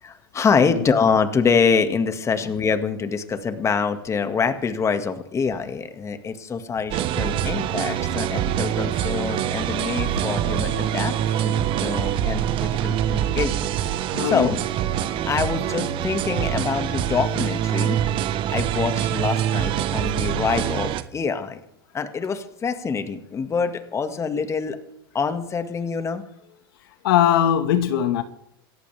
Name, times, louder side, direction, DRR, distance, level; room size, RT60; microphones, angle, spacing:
voice 1, 0.0-13.7 14.2-14.6 15.3-18.0 18.5-21.6 21.9-24.8 25.1-26.2, left 5 dB, 25° left, 8 dB, 2.0 m, -25 dB
sound 1, 6.9-21.0, right 10 dB, 45° right, 1.3 m, -24 dB
voice 2, 14.1-14.5 27.0-28.2, left 10 dB, 70° left, 9 dB, 1.7 m, -20 dB
27.0 x 14.0 x 3.5 m, 0.75 s
hypercardioid pair, 105°, 12 cm